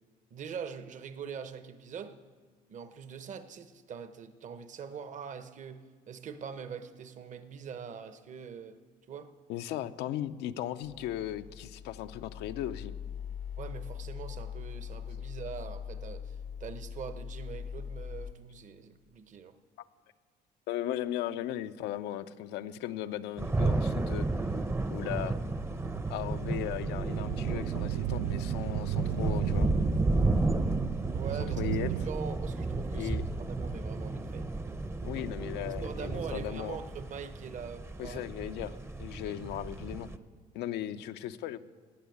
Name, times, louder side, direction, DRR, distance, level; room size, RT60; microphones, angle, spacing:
voice 1, 0.3-2.2 2.7-8.8 9.1-9.3 13.6-19.6 31.1-34.5 35.7-38.2 38.6-38.8 39.2-39.4, right 6 dB, 45° right, 10 dB, 1.0 m, -43 dB
voice 2, 9.5-12.9 20.7-24.3 24.9-25.4 26.1-29.7 31.6-31.9 32.9-33.3 35.0-36.8 38.0-40.1 40.5-41.6, left 12 dB, 85° left, 9 dB, 0.6 m, -37 dB
sound 1, 10.8-18.3, left 8 dB, 45° left, 0.6 m, -41 dB
sound 2, 23.4-40.2, right 2 dB, 15° right, 0.7 m, -33 dB
sound 3, 25.6-32.1, right 14 dB, 65° right, 0.4 m, -35 dB
17.0 x 6.4 x 9.4 m, 1.5 s
cardioid pair, 110°, 17 cm